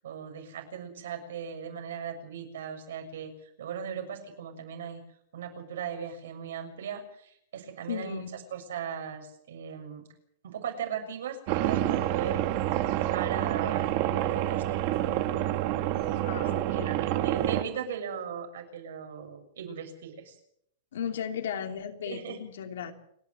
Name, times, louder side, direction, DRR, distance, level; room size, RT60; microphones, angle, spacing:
voice 1, 0.0-5.0 5.3-10.0 10.4-12.4 12.9-14.8 16.3-16.5 16.7-20.4 22.1-22.4, right 7 dB, 85° right, 4 dB, 6.9 m, -38 dB
voice 2, 7.9-8.3 16.2-17.0 20.9-22.9, left 8 dB, 85° left, 5 dB, 3.2 m, -35 dB
sound 1, 11.5-17.6, right 13 dB, 40° right, 1.3 m, -28 dB
29.5 x 11.0 x 8.0 m, 0.71 s
supercardioid pair, 170°, 0 cm